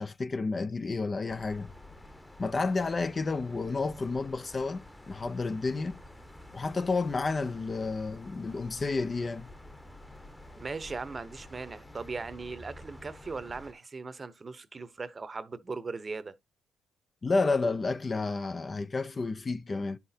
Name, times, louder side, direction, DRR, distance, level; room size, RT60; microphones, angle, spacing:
voice 1, 0.0-1.7 2.4-6.0 6.5-9.5 17.2-20.0, left 3 dB, 30° left, 0.5 m, -31 dB
sound 1, 1.3-13.7, left 1 dB, 10° left, 1.0 m, -50 dB
voice 2, 10.6-16.3, right 4 dB, 30° right, 0.9 m, -39 dB
10.0 x 5.8 x 2.8 m
cardioid pair, 85°, 0 cm